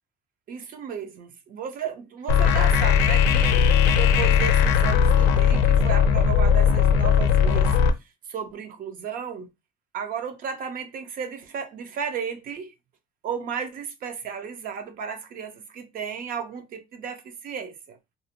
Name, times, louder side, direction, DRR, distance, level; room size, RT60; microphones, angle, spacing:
voice 1, 0.5-7.7 8.3-9.5 9.9-12.7 13.2-18.0, right 7 dB, 55° right, 0.6 m, -34 dB
sound 1, 2.3-7.9, left 7 dB, 90° left, 0.4 m, -18 dB
2.6 x 2.1 x 2.8 m
cardioid pair, 110°, 17 cm